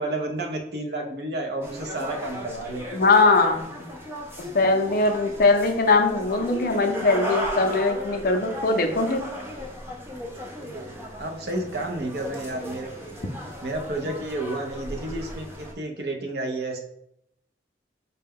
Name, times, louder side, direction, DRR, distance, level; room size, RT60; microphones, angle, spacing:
voice 1, 0.0-2.8 10.6-12.9 13.6-15.4 15.8-16.8, right 2 dB, 60° right, 3 dB, 0.6 m, -31 dB
sound 1, 1.6-15.7, equal, 15° right, 0.4 m, -36 dB
voice 2, 2.9-3.9 4.5-9.2, left 3 dB, 50° left, 4 dB, 0.4 m, -21 dB
4.0 x 2.2 x 3.6 m, 0.75 s
head